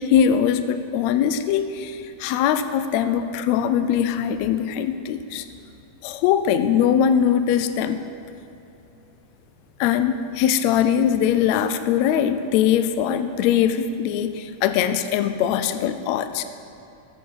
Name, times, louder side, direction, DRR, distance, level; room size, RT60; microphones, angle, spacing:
voice 1, 0.0-5.5 6.0-8.0 9.8-16.4, left 9 dB, 80° left, 10 dB, 1.6 m, -21 dB
13.5 x 7.9 x 6.4 m, 2.8 s
omnidirectional pair, 3.6 m